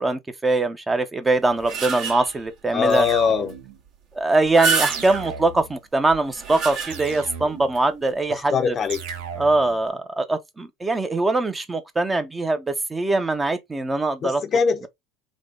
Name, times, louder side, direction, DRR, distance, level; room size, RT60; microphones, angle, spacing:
voice 1, 0.0-3.1 4.1-8.8 9.4-14.4, right 2 dB, 15° right, 0.5 m, -22 dB
sound 1, 1.3-2.5 3.1-3.2 3.5-3.6 4.3-5.4 6.1-7.3 7.7-7.8 8.9-9.1, right 4 dB, 65° right, 1.5 m, -27 dB
voice 2, 2.7-3.5 8.3-9.0 14.2-14.9, left 6 dB, 35° left, 0.5 m, -22 dB
sound 2, 2.9-3.8 4.9-5.8 6.9-7.8 8.9-9.8, right 6 dB, 85° right, 0.7 m, -36 dB
3.5 x 2.1 x 3.6 m
supercardioid pair, 110°, 0 cm